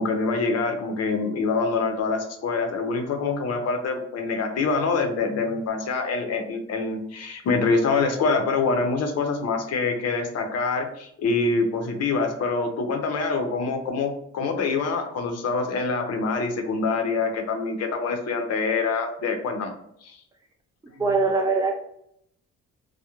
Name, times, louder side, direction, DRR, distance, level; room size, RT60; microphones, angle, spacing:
voice 1, 0.0-19.7 20.0-20.2 20.9-21.2, left 4 dB, 55° left, 4 dB, 0.6 m, -25 dB
voice 2, 21.0-21.7, right 3 dB, 10° right, 0 dB, 0.3 m, -22 dB
2.3 x 2.1 x 2.8 m, 0.73 s
cardioid pair, 90°, 30 cm